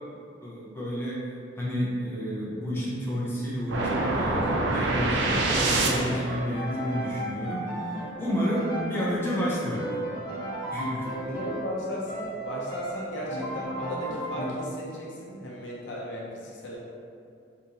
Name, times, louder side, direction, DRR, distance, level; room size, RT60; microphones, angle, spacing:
voice 1, 0.4-1.2 1.6-9.8 10.7-11.1, equal, 15° left, -7 dB, 0.6 m, -30 dB
Piano, 3.7-11.8 12.1-14.5, right 1 dB, 25° right, 1.1 m, -35 dB
sound 1, 3.7-6.4, right 2 dB, 65° right, 0.4 m, -26 dB
voice 2, 11.2-16.8, equal, 70° left, -4 dB, 0.6 m, -35 dB
3.6 x 2.6 x 2.8 m, 2.4 s
head